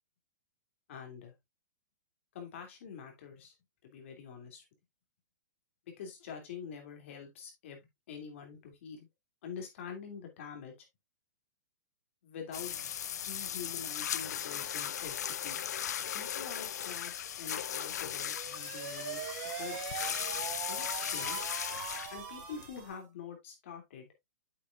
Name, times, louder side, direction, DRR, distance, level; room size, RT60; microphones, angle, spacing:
voice 1, 0.9-1.3 2.3-3.5 3.8-4.6 6.0-7.8 8.1-9.1 9.4-10.7 12.2-12.9 13.2-15.6 16.1-19.8 20.7-21.4 22.1-24.1, left 7 dB, 40° left, 2.9 m, -46 dB
sound 1, 12.5-22.9, left 9 dB, 60° left, 0.6 m, -37 dB
sound 2, 18.2-23.0, right 7 dB, 30° right, 2.1 m, -41 dB
8.6 x 7.1 x 2.5 m
hypercardioid pair, 175°, 10 cm